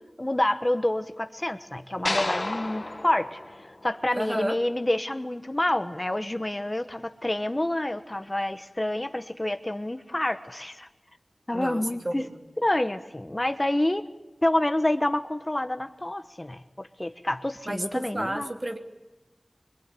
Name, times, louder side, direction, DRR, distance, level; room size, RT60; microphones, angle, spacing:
voice 1, 0.2-10.9 11.5-12.3 12.6-14.0 14.4-18.5, left 1 dB, 30° left, 9 dB, 1.1 m, -28 dB
sound 1, 2.1-4.4, left 2 dB, 45° left, 1.8 m, -32 dB
voice 2, 4.1-4.6 11.5-12.4 17.6-18.8, right 1 dB, 40° right, 3 dB, 3.1 m, -31 dB
25.5 x 21.0 x 10.0 m, 1.1 s
wide cardioid pair, 50°, 0 cm